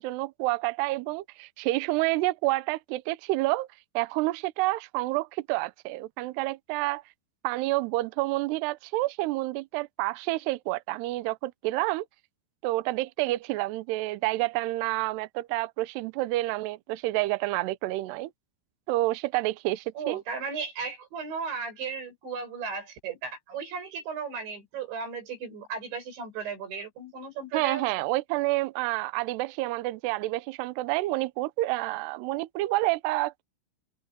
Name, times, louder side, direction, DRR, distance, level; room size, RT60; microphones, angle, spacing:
voice 1, 0.0-3.7 3.9-7.0 7.4-12.1 12.6-18.3 18.9-20.2 27.5-33.4, right 19 dB, 80° right, 2.5 m, -29 dB
voice 2, 20.0-27.8, right 5 dB, 65° right, 9.7 m, -35 dB
omnidirectional pair, 5.6 m